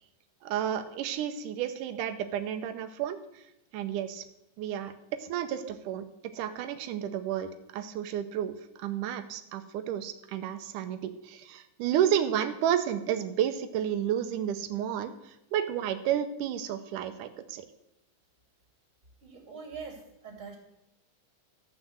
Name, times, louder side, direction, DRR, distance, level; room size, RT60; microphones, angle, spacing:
voice 1, 0.4-3.4 3.7-4.2 4.6-4.9 5.2-6.1 6.3-17.7, right 10 dB, 90° right, 9 dB, 2.3 m, -31 dB
voice 2, 19.2-20.6, right 5 dB, 25° right, 2 dB, 2.9 m, -43 dB
14.0 x 6.1 x 7.8 m, 0.88 s
omnidirectional pair, 3.6 m